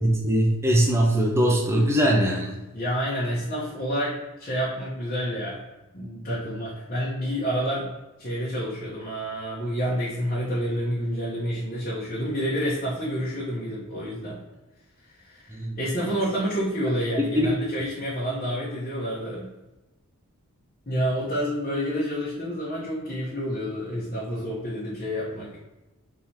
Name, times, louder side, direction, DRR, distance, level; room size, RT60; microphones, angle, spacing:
voice 1, 0.0-2.5 15.5-15.8 17.3-17.5, right 1 dB, 10° right, -1 dB, 0.6 m, -21 dB
voice 2, 2.7-5.6 5.9-7.9 8.2-14.4 15.0-19.5 20.9-25.6, equal, 40° left, -8 dB, 1.1 m, -29 dB
3.8 x 2.9 x 4.6 m, 1.0 s
head